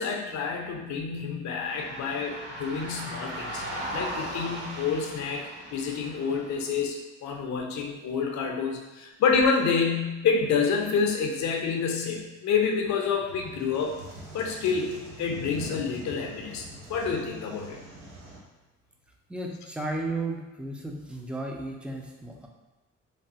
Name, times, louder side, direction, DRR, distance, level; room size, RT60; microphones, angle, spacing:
voice 1, 0.0-3.6 3.9-13.9 14.3-17.8, left 5 dB, 65° left, 2 dB, 0.5 m, -28 dB
sound 1, 1.5-6.7, right 1 dB, 35° right, 1.0 m, -38 dB
sound 2, 13.1-18.4, right 1 dB, 90° right, 0.7 m, -44 dB
voice 2, 19.3-22.5, right 2 dB, 5° right, 1 dB, 0.3 m, -34 dB
3.2 x 2.2 x 2.7 m, 1.1 s
cardioid pair, 90°, 30 cm